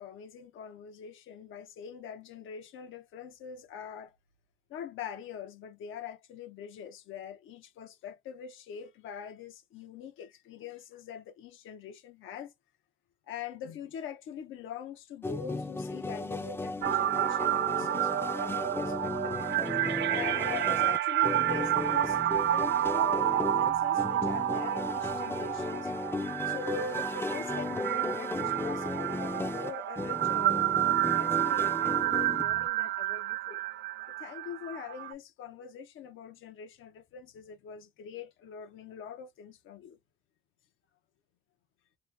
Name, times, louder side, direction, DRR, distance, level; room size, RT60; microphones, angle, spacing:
voice 1, 0.0-4.2 4.7-12.5 13.3-19.4 20.1-25.9 26.4-33.6 34.1-40.0, left 7 dB, 80° left, 0.8 m, -43 dB
sound 1, 15.2-32.7, left 2 dB, 10° left, 0.5 m, -36 dB
sound 2, 16.8-35.1, right 13 dB, 65° right, 0.4 m, -30 dB
2.9 x 2.1 x 3.3 m
cardioid pair, 90°, 20 cm